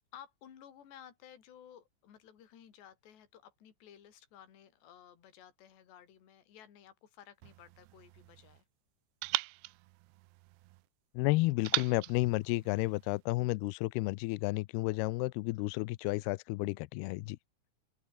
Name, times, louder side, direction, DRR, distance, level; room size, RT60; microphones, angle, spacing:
voice 1, 0.1-8.7, left 9 dB, 65° left, 5.5 m, -56 dB
sound 1, 7.4-8.6 9.2-10.8 11.6-13.2, right 21 dB, 80° right, 2.5 m, -39 dB
voice 2, 11.1-17.4, left 21 dB, 85° left, 2.3 m, -32 dB
open air
omnidirectional pair, 5.3 m